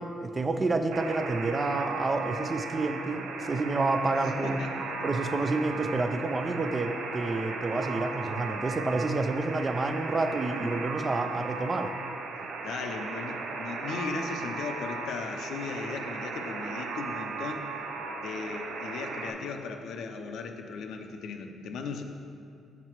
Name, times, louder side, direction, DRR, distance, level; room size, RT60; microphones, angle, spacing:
voice 1, 0.0-4.6 5.0-11.9, right 3 dB, 30° right, 7 dB, 0.4 m, -29 dB
Alarm, 0.9-19.3, right 4 dB, 80° right, 0.6 m, -36 dB
voice 2, 4.1-4.7 12.6-17.7 18.2-22.0, left 4 dB, 75° left, 5 dB, 0.5 m, -37 dB
5.9 x 5.5 x 4.6 m, 2.4 s
cardioid pair, 90°, 0 cm